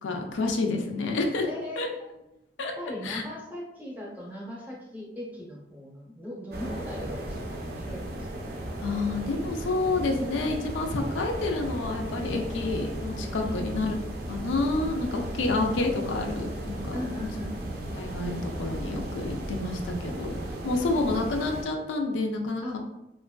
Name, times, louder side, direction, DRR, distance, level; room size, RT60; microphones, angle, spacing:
voice 1, 0.0-1.5 1.8-1.9 2.6-2.7 3.0-3.2 8.8-13.9 14.3-17.0 17.9-20.4 20.6-22.8, left 3 dB, 90° left, 3 dB, 0.4 m, -29 dB
voice 2, 1.4-2.2 2.8-8.7 13.4-13.6 16.9-17.7 20.7-21.0 22.6-22.8, left 1 dB, 10° right, -4 dB, 0.6 m, -39 dB
sound 1, 6.5-21.6, right 1 dB, 55° right, 0.5 m, -35 dB
2.9 x 2.5 x 2.2 m, 0.88 s
head